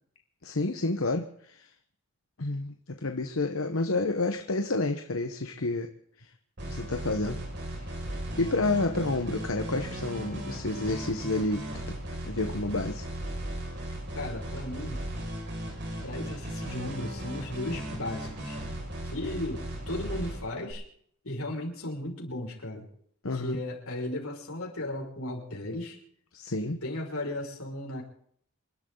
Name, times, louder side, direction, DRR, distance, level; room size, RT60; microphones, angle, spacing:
voice 1, 0.4-1.7 2.4-2.7 3.0-5.9 6.2-6.3 6.7-7.4 7.8-7.9 8.4-12.0 12.2-13.0 23.2-23.6 26.3-26.8, left 2 dB, 70° left, 6 dB, 1.2 m, -29 dB
sound 1, 6.6-20.7, right 1 dB, 55° right, 6.0 m, -37 dB
voice 2, 14.1-15.0 16.0-18.6 19.0-20.9 21.2-22.9 23.3-26.0 26.8-28.0, left 1 dB, 90° left, -1 dB, 5.7 m, -35 dB
27.5 x 12.0 x 3.9 m, 0.65 s
head